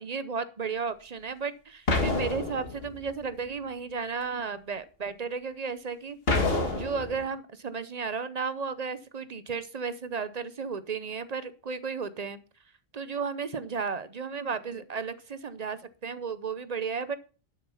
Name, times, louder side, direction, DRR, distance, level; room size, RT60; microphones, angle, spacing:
voice 1, 0.0-12.4 12.9-17.2, right 5 dB, 45° right, 13 dB, 0.8 m, -34 dB
sound 1, 1.9-3.1 6.3-7.2, left 3 dB, 65° left, 2.2 m, -27 dB
11.5 x 7.0 x 5.6 m, 0.36 s
omnidirectional pair, 1.1 m